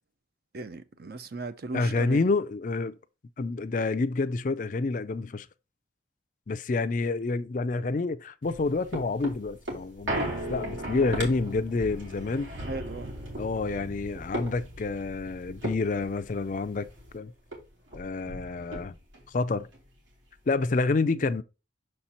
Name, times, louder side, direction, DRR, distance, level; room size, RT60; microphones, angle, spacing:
voice 1, 0.5-2.2 12.7-13.2 21.2-21.4, right 3 dB, 50° right, 0.6 m, -37 dB
voice 2, 1.7-3.0 3.4-5.5 6.5-12.5 13.4-16.9 17.1-17.3 17.9-18.9 19.3-19.7 20.5-21.4, left 3 dB, 40° left, 0.4 m, -28 dB
sound 1, 8.4-17.1 17.5-17.6 17.9-19.2 19.7-19.8, right 1 dB, 80° right, 2.7 m, -37 dB
6.5 x 4.4 x 4.1 m
head